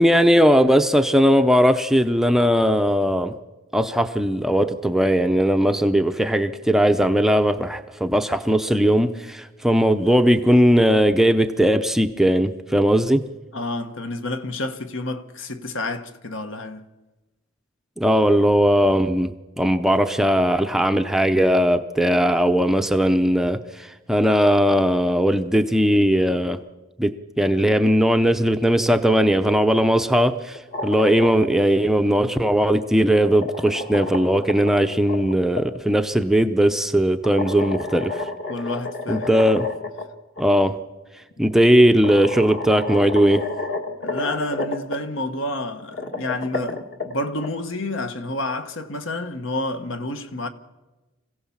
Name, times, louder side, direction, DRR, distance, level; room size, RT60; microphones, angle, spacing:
voice 1, 0.0-3.3 3.7-13.3 18.0-26.6 27.0-38.1 39.1-39.7 40.4-40.8 41.4-43.4, equal, ahead, 0.6 m, -18 dB
voice 2, 13.5-16.9 38.5-39.3 41.4-41.6 44.0-50.5, left 2 dB, 65° left, 1.5 m, -29 dB
sound 1, 30.5-31.6 32.8-35.6 37.2-40.0 40.4-40.5 41.5-41.6 42.0-45.0 45.8-47.5, left 2 dB, 45° left, 1.8 m, -31 dB
26.0 x 16.0 x 7.3 m
head